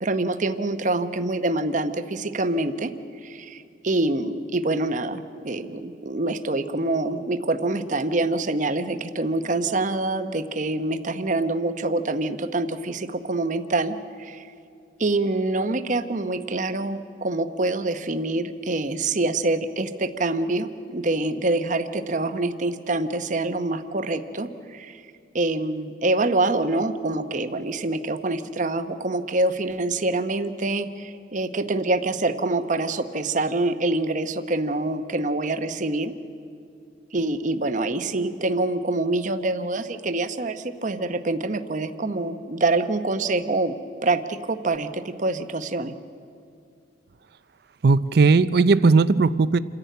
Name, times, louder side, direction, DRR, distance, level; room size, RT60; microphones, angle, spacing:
voice 1, 0.0-2.9 3.2-14.4 15.0-25.0 25.3-36.1 37.1-43.7 44.0-45.9, right 2 dB, 45° right, 10 dB, 0.9 m, -25 dB
voice 2, 47.8-49.6, right 4 dB, 60° right, 16 dB, 0.5 m, -17 dB
27.5 x 11.0 x 9.3 m, 2.4 s
head